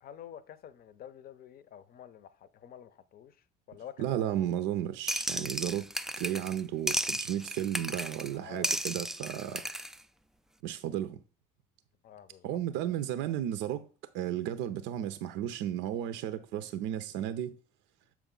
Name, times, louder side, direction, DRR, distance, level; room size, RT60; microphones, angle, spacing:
voice 1, 0.0-3.4 3.7-4.5 8.3-8.8 9.5-9.7 12.0-12.9, left 9 dB, 45° left, 0.7 m, -49 dB
voice 2, 4.0-5.9 6.2-9.6 10.6-11.2 12.4-13.9 14.1-17.6, right 11 dB, 60° right, 0.6 m, -33 dB
sound 1, 5.1-6.6 6.9-8.3 8.6-10.0, right 1 dB, ahead, 0.3 m, -34 dB
7.2 x 4.7 x 3.8 m
hypercardioid pair, 60°, 21 cm